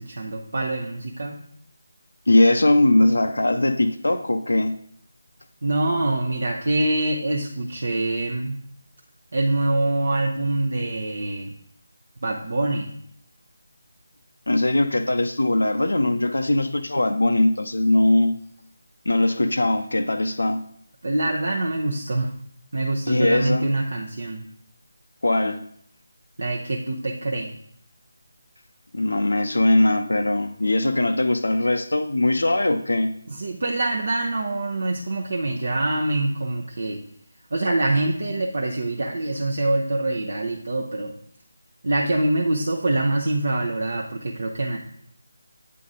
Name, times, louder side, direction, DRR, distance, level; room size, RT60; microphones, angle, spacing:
voice 1, 0.0-1.4 5.6-8.6 9.3-11.5 12.2-12.9 21.0-22.3 22.7-24.5 26.4-27.6 33.3-37.0 37.5-41.1 41.8-44.8, right 2 dB, 55° right, 0 dB, 0.7 m, -25 dB
voice 2, 2.3-4.7 14.5-18.3 19.1-20.6 23.1-23.7 25.2-25.6 28.9-33.1, left 1 dB, 75° left, 7 dB, 0.5 m, -20 dB
8.3 x 3.8 x 3.7 m, 0.66 s
figure-of-eight pair, 160°, 0 cm